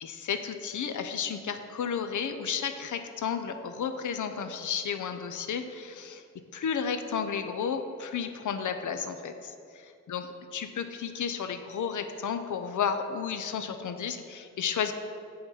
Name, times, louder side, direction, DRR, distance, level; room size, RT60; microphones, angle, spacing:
voice 1, 0.0-6.2 6.5-10.3 10.5-14.9, left 7 dB, 90° left, 8 dB, 0.6 m, -32 dB
7.8 x 5.7 x 5.6 m, 2.4 s
wide cardioid pair, 160°, 29 cm